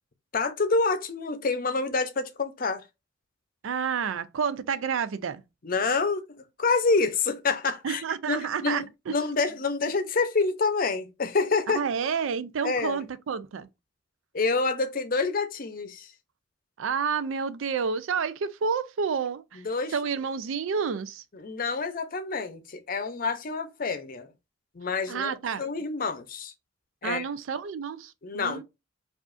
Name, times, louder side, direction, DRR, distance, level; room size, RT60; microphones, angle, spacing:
voice 1, 0.3-2.8 5.6-6.3 6.6-11.8 12.6-13.0 14.3-16.1 19.5-19.9 21.3-24.3 24.7-25.3 25.6-26.5 27.0-27.2 28.2-28.6, left 4 dB, 45° left, 0.6 m, -27 dB
voice 2, 3.6-5.4 7.8-9.2 11.7-13.7 16.8-19.6 19.9-21.2 25.1-25.6 27.0-28.6, right 6 dB, 85° right, 0.4 m, -29 dB
4.8 x 2.5 x 2.5 m
head